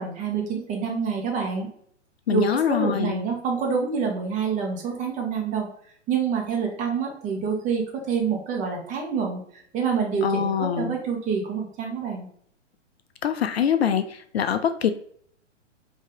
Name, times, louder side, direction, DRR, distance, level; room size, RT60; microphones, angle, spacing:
voice 1, 0.0-1.7 2.3-5.7 6.1-12.3, right 6 dB, 20° right, 0 dB, 1.0 m, -27 dB
voice 2, 2.3-3.2 10.2-10.9 13.2-14.9, left 8 dB, 55° left, 9 dB, 0.5 m, -24 dB
5.2 x 2.8 x 3.5 m, 0.63 s
figure-of-eight pair, 115°, 37 cm